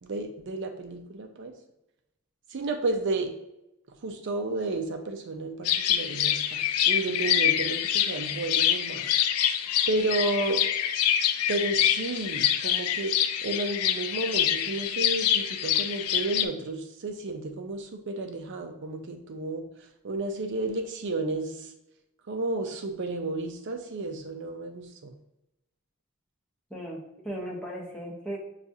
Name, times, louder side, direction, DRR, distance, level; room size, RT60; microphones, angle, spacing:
voice 1, 0.0-1.5 2.5-3.3 4.0-6.6 6.9-9.1 9.4-9.5 9.9-10.6 11.5-21.7 22.3-25.1, right 2 dB, 55° right, 5 dB, 0.4 m, -32 dB
sound 1, 5.6-16.4, left 10 dB, 80° left, 0.4 m, -26 dB
voice 2, 26.7-28.4, equal, 5° left, -3 dB, 0.8 m, -37 dB
6.7 x 2.4 x 2.6 m, 0.89 s
head